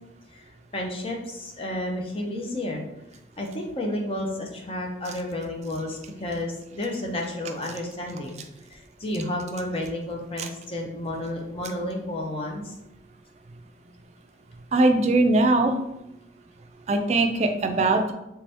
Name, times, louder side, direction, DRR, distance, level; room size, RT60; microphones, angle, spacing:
voice 1, 0.3-2.8 3.4-8.4 8.7-12.7, left 1 dB, 30° left, 1 dB, 0.6 m, -31 dB
voice 2, 14.7-15.7 16.9-18.1, right 2 dB, 40° right, 5 dB, 0.3 m, -21 dB
3.4 x 2.7 x 3.4 m, 0.89 s
head